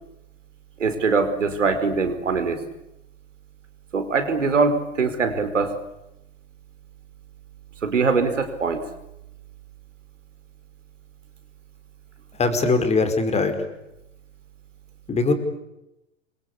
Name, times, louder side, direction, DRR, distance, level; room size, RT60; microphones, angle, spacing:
voice 1, 0.8-2.6 3.9-5.7 7.8-8.8, right 4 dB, 80° right, 8 dB, 4.7 m, -22 dB
voice 2, 12.4-13.5 15.1-15.3, left 3 dB, 15° left, 8 dB, 5.0 m, -21 dB
27.0 x 24.0 x 8.6 m, 0.90 s
figure-of-eight pair, 100°, 37 cm